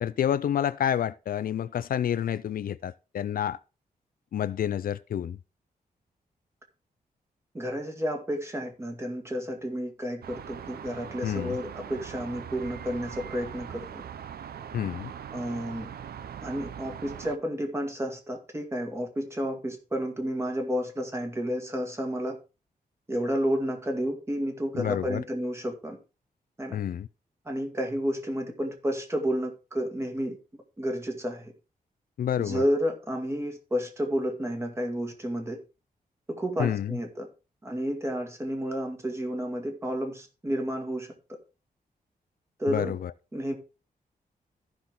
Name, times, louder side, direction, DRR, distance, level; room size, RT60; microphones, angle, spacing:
voice 1, 0.0-3.6 4.3-5.4 11.2-11.6 14.7-15.1 24.7-25.2 26.7-27.1 32.2-32.6 36.6-37.0 42.7-43.1, left 9 dB, 70° left, 0.4 m, -29 dB
voice 2, 7.5-13.9 15.3-15.9 16.4-22.4 23.1-26.0 26.6-26.8 27.5-30.4 30.8-31.5 32.4-35.6 36.3-37.3 37.6-41.1 42.6-43.0 43.3-43.6, equal, 15° right, 1.9 m, -31 dB
sound 1, 10.2-17.4, right 8 dB, 85° right, 0.7 m, -41 dB
14.0 x 6.0 x 3.7 m
wide cardioid pair, 180°, 16 cm